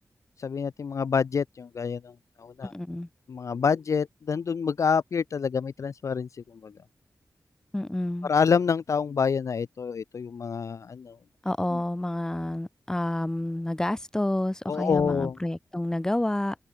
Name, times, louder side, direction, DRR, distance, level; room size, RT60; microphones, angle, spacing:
voice 1, 0.4-2.1 2.4-2.7 3.3-6.3 6.6-6.7 8.2-11.2 11.7-11.8 14.7-15.4, left 6 dB, 50° left, 0.3 m, -27 dB
voice 2, 2.6-3.1 7.7-8.3 11.4-16.5, left 1 dB, 10° left, 0.6 m, -29 dB
wide cardioid pair, 160°, 6 cm